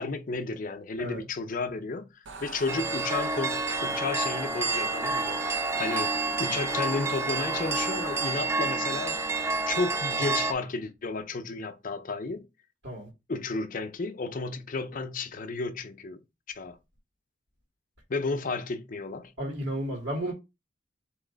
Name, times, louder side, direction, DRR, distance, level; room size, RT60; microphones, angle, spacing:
voice 1, 0.0-2.1 2.4-5.4 5.8-9.2 9.7-12.5 13.3-16.2 16.5-16.8 18.1-19.3, left 3 dB, 45° left, 0.6 m, -32 dB
sound 1, 2.3-8.3, right 4 dB, 85° right, 0.7 m, -41 dB
sound 2, 2.7-10.5, right 3 dB, 15° right, 0.4 m, -29 dB
voice 2, 19.4-20.3, right 1 dB, 65° right, 1.8 m, -32 dB
4.2 x 3.1 x 3.8 m
head